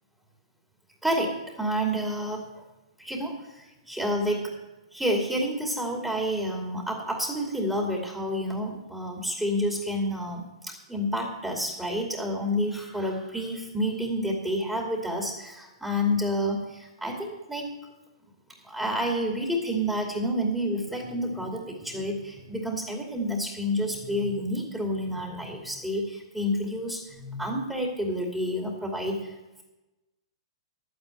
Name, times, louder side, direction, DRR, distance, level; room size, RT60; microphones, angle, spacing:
voice 1, 1.0-2.6 3.0-4.5 4.9-17.7 18.6-29.3, equal, 5° right, 0 dB, 2.6 m, -29 dB
11.0 x 9.3 x 8.4 m, 1.0 s
hypercardioid pair, 130°, 3 cm